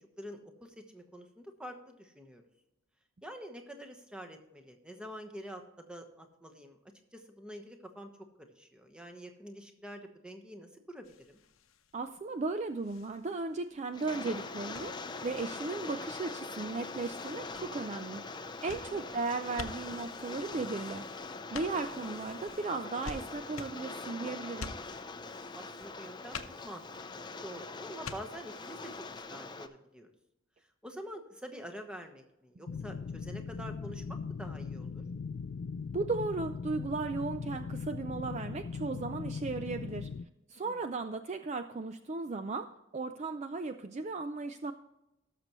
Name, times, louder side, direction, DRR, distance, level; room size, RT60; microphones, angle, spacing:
voice 1, 0.2-2.4 3.2-6.8 7.1-8.1 8.4-11.4 18.9-19.1 25.5-26.4 26.6-30.1 30.8-35.0 40.6-40.9, equal, 5° right, 4 dB, 1.0 m, -47 dB
sound 1, 11.0-29.2, left 4 dB, 90° left, 0.8 m, -50 dB
voice 2, 11.9-15.0 15.2-18.2 18.6-21.1 21.5-24.7 35.9-40.1 40.5-44.7, right 3 dB, 35° right, 8 dB, 0.4 m, -36 dB
Rain, 13.9-29.7, left 3 dB, 20° left, 0.6 m, -43 dB
sound 2, 32.7-40.2, left 5 dB, 65° left, 0.4 m, -39 dB
17.0 x 6.7 x 3.1 m, 0.90 s
head